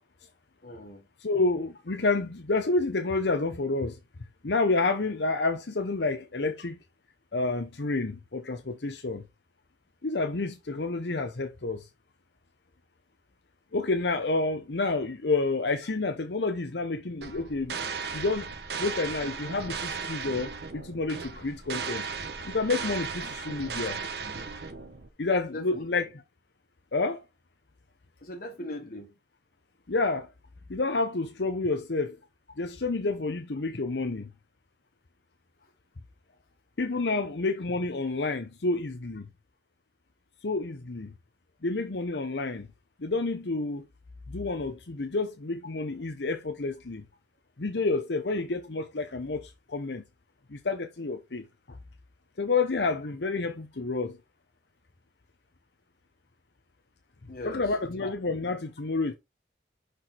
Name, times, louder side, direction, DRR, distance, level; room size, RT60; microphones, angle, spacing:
voice 1, 0.6-1.1 25.5-25.9 28.2-29.1 57.3-58.1, left 1 dB, 50° left, 1.2 m, -40 dB
voice 2, 1.2-3.9 4.4-6.8 7.3-9.2 10.0-11.8 13.7-17.7 18.1-18.5 18.8-22.0 22.4-24.0 25.2-26.1 26.9-27.2 29.9-30.3 30.7-32.2 32.6-34.3 36.8-39.2 40.4-41.1 41.6-42.6 43.0-43.8 44.3-47.0 47.6-49.4 49.7-50.0 50.5-51.4 52.4-54.2 57.4-59.1, left 3 dB, 65° left, 0.8 m, -29 dB
sound 1, 17.2-25.1, right 5 dB, 60° right, 1.0 m, -36 dB
5.9 x 5.0 x 4.2 m
head